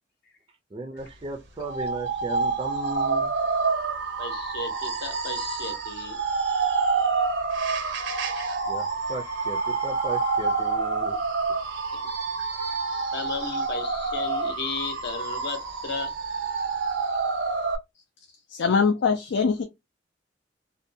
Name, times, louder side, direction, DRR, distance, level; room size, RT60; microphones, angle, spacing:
voice 1, 0.7-3.3 8.7-11.2, right 2 dB, 30° right, 0.4 m, -36 dB
sound 1, 1.6-17.8, right 4 dB, 80° right, 0.6 m, -28 dB
voice 2, 4.2-6.2 12.4-12.5 13.1-16.1, left 4 dB, 65° left, 0.7 m, -34 dB
sound 2, 8.6-11.1 11.5-16.0 16.8-17.4, left 8 dB, 30° left, 0.8 m, -41 dB
voice 3, 18.5-19.6, left 5 dB, 85° left, 0.4 m, -22 dB
2.6 x 2.1 x 2.6 m
head